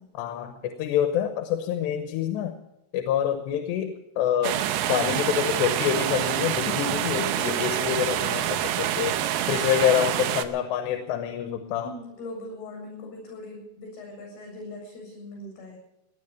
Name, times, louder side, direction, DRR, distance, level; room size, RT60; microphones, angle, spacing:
voice 1, 0.2-2.6 2.9-4.6 4.9-9.2 9.5-11.9, left 9 dB, 80° left, 7 dB, 3.1 m, -26 dB
sound 1, 4.4-10.5, right 11 dB, 85° right, 1.9 m, -27 dB
voice 2, 9.2-10.0 11.8-15.8, left 1 dB, 65° left, 1 dB, 9.5 m, -41 dB
18.5 x 10.5 x 6.8 m, 0.88 s
omnidirectional pair, 5.0 m